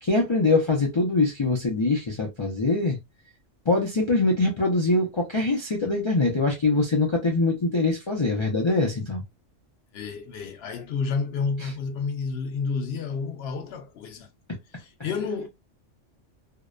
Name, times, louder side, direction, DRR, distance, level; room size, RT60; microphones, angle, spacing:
voice 1, 0.0-3.0 3.7-9.2, left 2 dB, 45° left, 0.3 m, -23 dB
voice 2, 9.9-14.3 14.8-15.5, left 5 dB, 65° left, 0.8 m, -30 dB
2.7 x 2.0 x 2.3 m
omnidirectional pair, 1.2 m